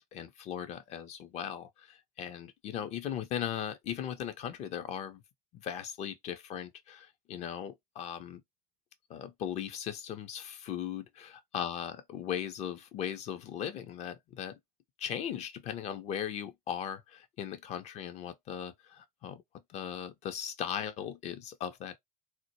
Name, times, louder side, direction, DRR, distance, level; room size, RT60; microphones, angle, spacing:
voice 1, 0.0-5.2 5.5-8.4 9.1-14.6 15.0-19.4 19.7-22.0, left 9 dB, 35° left, 0.5 m, -38 dB
2.1 x 2.0 x 2.9 m
figure-of-eight pair, 65°, 20 cm